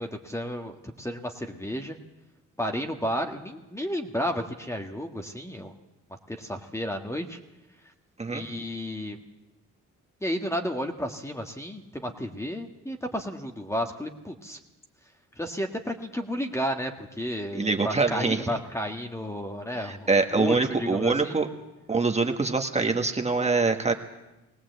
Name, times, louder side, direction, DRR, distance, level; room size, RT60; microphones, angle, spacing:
voice 1, 0.0-2.0 2.6-5.7 6.3-7.4 8.3-9.2 10.2-14.6 15.3-21.4, equal, 10° left, 4 dB, 1.6 m, -32 dB
voice 2, 17.5-18.4 19.8-21.5 21.9-23.9, right 4 dB, 20° right, 4 dB, 1.6 m, -24 dB
20.5 x 17.5 x 8.0 m, 1.0 s
cardioid pair, 90°, 30 cm